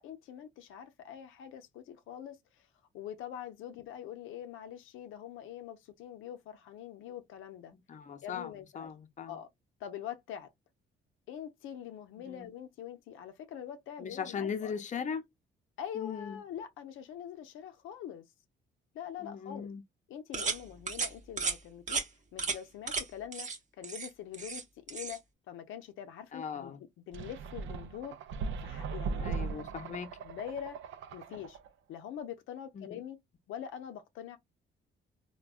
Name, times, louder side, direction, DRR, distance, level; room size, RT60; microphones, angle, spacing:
voice 1, 0.0-2.7 2.9-7.7 8.2-8.9 9.3-9.5 9.8-10.5 11.3-14.8 15.8-18.2 18.9-19.7 20.1-22.0 22.3-23.5 23.8-25.2 25.5-26.7 27.1-28.2 28.6-29.3 30.2-30.8 31.1-31.6 31.9-33.2 33.5-34.4, left 9 dB, 85° left, 0.5 m, -44 dB
voice 2, 7.9-9.4 12.3-12.5 14.0-15.2 16.0-16.4 19.2-19.8 26.3-26.8 29.2-30.1 32.8-33.0, left 7 dB, 40° left, 0.6 m, -39 dB
sound 1, 20.3-20.6 20.9-21.1 21.4-21.6 21.9-22.0 22.4-22.6 22.9-23.0 23.3-23.6 23.8-24.6 24.9-25.2, right 5 dB, 35° right, 0.8 m, -34 dB
sound 2, 27.1-31.7, right 5 dB, 75° right, 0.4 m, -39 dB
3.4 x 2.2 x 2.3 m
cardioid pair, 90°, 20 cm